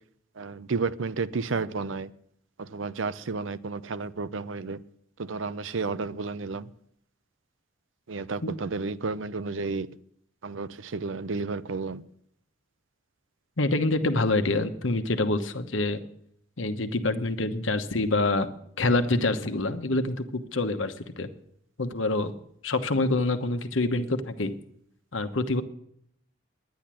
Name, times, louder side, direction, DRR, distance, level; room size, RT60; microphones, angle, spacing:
voice 1, 0.4-2.1 2.6-4.8 5.2-6.7 8.1-9.9 10.4-12.0, right 4 dB, 85° right, 0.6 m, -32 dB
voice 2, 13.6-16.0 16.6-18.5 18.8-21.3 21.8-22.3 22.6-24.5 25.1-25.6, left 2 dB, 85° left, 1.1 m, -26 dB
10.5 x 10.5 x 7.5 m
head